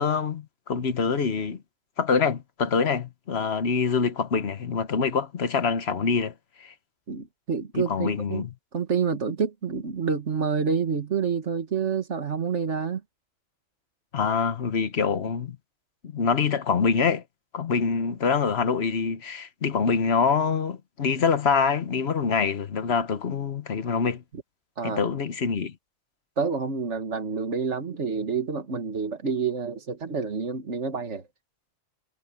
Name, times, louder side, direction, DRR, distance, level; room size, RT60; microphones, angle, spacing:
voice 1, 0.0-1.6 2.0-6.3 6.6-6.7 7.7-8.5 14.1-15.6 16.1-17.2 17.5-24.2 24.8-25.7, left 5 dB, 65° left, 1.3 m, -25 dB
voice 2, 7.1-8.4 8.7-13.0 24.8-25.1 26.4-31.2, right 5 dB, 85° right, 2.1 m, -28 dB
omnidirectional pair, 1.2 m